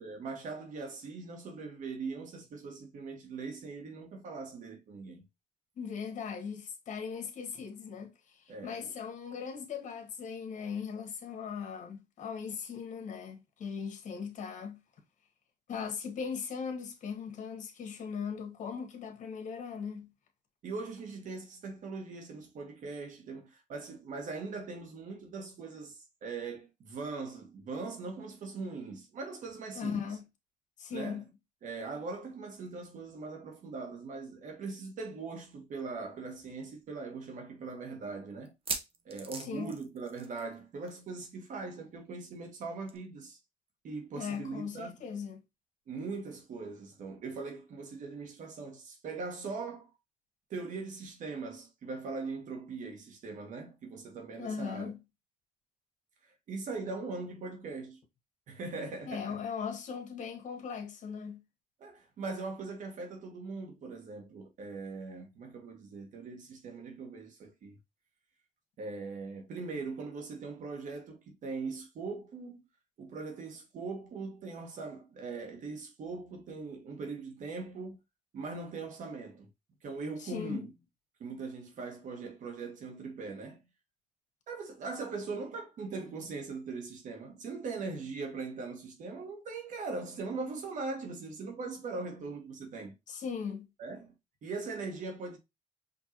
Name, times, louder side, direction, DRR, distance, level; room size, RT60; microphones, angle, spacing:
voice 1, 0.0-5.2 8.5-8.9 20.6-30.0 30.9-31.2 31.6-38.5 39.0-43.4 43.8-44.9 45.9-49.9 50.5-54.9 56.2-58.0 58.5-59.4 61.8-67.7 68.8-72.6 73.0-78.0 78.3-79.5 79.8-80.7 81.2-83.6 84.5-92.9 93.8-94.1 94.4-95.4, right 4 dB, 70° right, 1.4 m, -40 dB
voice 2, 5.8-14.8 15.7-20.1 29.7-30.2 30.8-31.3 39.4-39.7 44.1-45.4 54.4-55.0 59.1-61.4 80.2-80.7 93.1-93.7, left 6 dB, 65° left, 1.2 m, -39 dB
sound 1, 35.8-35.9 36.2-36.3 36.9-37.0 38.4-40.6 40.9-41.1 41.3-41.4 42.9-43.0, right 4 dB, 45° right, 0.9 m, -40 dB
5.3 x 2.6 x 2.9 m
cardioid pair, 80°, 14 cm